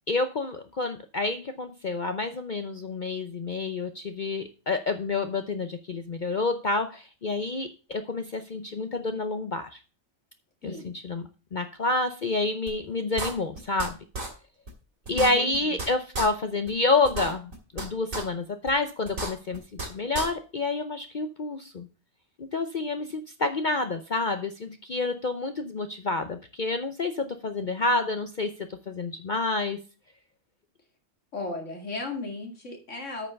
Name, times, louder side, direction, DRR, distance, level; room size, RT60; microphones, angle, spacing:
voice 1, 0.1-9.8 10.6-14.0 15.1-19.6 19.9-21.9 22.4-29.8, left 3 dB, 45° left, 8 dB, 0.7 m, -29 dB
voice 2, 10.6-10.9 15.1-15.8 31.3-33.3, left 2 dB, 60° left, 2 dB, 2.6 m, -35 dB
sound 1, 12.7-12.8 13.2-13.9 14.1-14.3 14.7-14.8 15.1-15.9 16.1-16.3 16.7-16.8 17.1-17.8 18.1-18.2 18.7-18.8 19.1-19.9 20.1-20.3, right 2 dB, 75° right, 3.0 m, -32 dB
8.5 x 5.6 x 6.4 m, 0.34 s
omnidirectional pair, 1.4 m